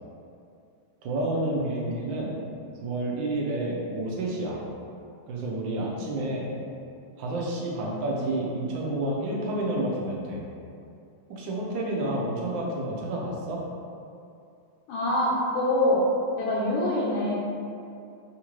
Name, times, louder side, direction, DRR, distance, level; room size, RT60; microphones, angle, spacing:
voice 1, 1.0-2.3 2.8-4.6 5.3-6.5 7.2-10.4 11.3-13.6, right 1 dB, 80° right, -3 dB, 1.3 m, -29 dB
voice 2, 14.9-16.0 16.4-17.3, left 1 dB, 90° left, -9 dB, 1.4 m, -24 dB
3.6 x 2.5 x 2.9 m, 2.5 s
omnidirectional pair, 2.1 m